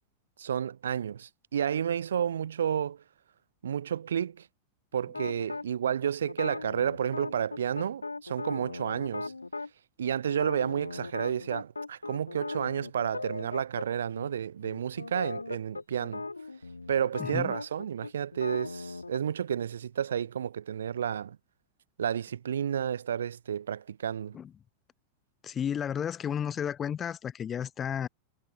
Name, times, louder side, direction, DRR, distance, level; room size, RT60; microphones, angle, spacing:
voice 1, 0.4-3.0 3.6-4.5 4.9-9.3 10.0-16.3 16.9-21.4 22.0-24.4, right 8 dB, 65° right, 5.2 m, -31 dB
sound 1, 5.1-5.7 6.3-9.7 10.3-13.9 14.2-14.3 14.6-19.2, left 3 dB, 80° left, 5.4 m, -38 dB
voice 2, 17.2-17.5 24.3-24.5 25.4-28.1, left 8 dB, 25° left, 4.3 m, -32 dB
figure-of-eight pair, 90°, 0 cm